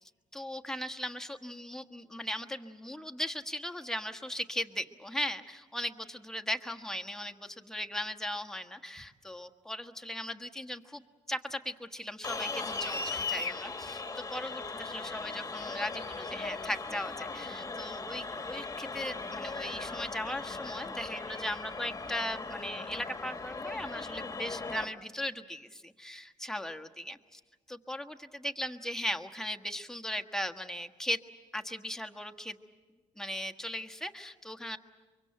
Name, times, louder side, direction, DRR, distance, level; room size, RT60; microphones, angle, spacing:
voice 1, 0.3-11.0 11.3-27.4 27.7-31.2 31.5-32.6 33.2-34.8, left 1 dB, 5° left, 6 dB, 1.4 m, -38 dB
sound 1, 12.2-24.9, left 3 dB, 25° left, 1.6 m, -38 dB
24.0 x 24.0 x 8.0 m, 1.4 s
cardioid pair, 75°, 13 cm